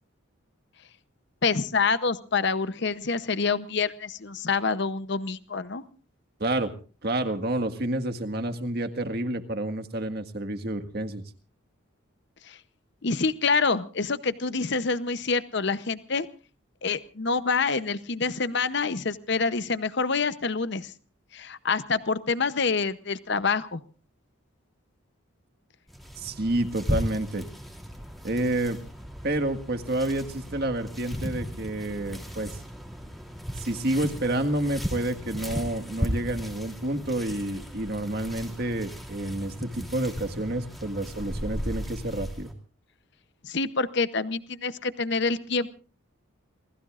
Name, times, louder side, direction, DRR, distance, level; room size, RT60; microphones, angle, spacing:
voice 1, 1.4-5.8 12.4-12.6 13.0-16.3 16.8-20.9 21.3-23.8 43.4-45.7, left 4 dB, 55° left, 13 dB, 0.8 m, -27 dB
voice 2, 6.4-6.7 7.0-11.2 26.2-27.4 28.2-28.8 29.2-32.6 33.6-42.5, right 1 dB, 50° right, 7 dB, 1.7 m, -29 dB
sound 1, 25.9-42.5, equal, ahead, 3.0 m, -36 dB
28.5 x 20.0 x 2.5 m, 0.38 s
head